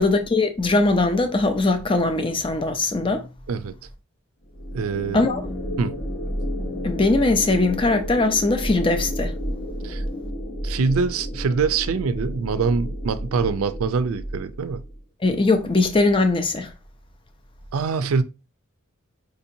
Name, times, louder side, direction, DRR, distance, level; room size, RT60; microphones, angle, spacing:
voice 1, 0.0-3.3 5.1-5.4 6.8-9.3 15.2-16.7, left 2 dB, 25° left, 0.5 m, -20 dB
sound 1, 4.5-15.0, equal, 60° left, 1.1 m, -31 dB
voice 2, 4.7-5.2 5.8-5.9 9.8-10.0 10.6-14.8 17.7-18.2, right 5 dB, 80° right, 0.4 m, -24 dB
5.0 x 2.7 x 2.6 m
head